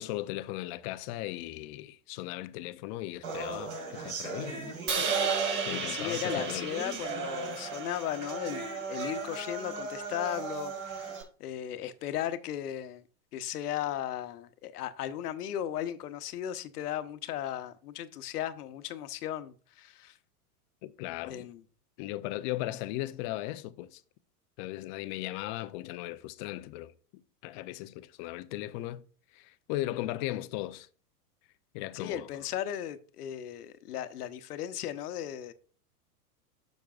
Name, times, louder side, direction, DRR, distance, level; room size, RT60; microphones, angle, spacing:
voice 1, 0.0-4.6 5.0-5.1 5.7-6.7 20.8-21.5 22.0-24.0 24.6-26.9 27.4-29.0 29.3-30.9 31.7-32.3, left 16 dB, 35° left, 0.4 m, -37 dB
sound 1, 3.2-11.2, right 4 dB, 65° right, 4.1 m, -36 dB
Crash cymbal, 4.9-9.1, right 5 dB, 25° right, 1.1 m, -35 dB
voice 2, 5.9-13.0 13.3-20.2 21.2-21.6 31.9-35.5, left 11 dB, 75° left, 1.0 m, -36 dB
10.5 x 6.4 x 2.4 m
hypercardioid pair, 125°, 47 cm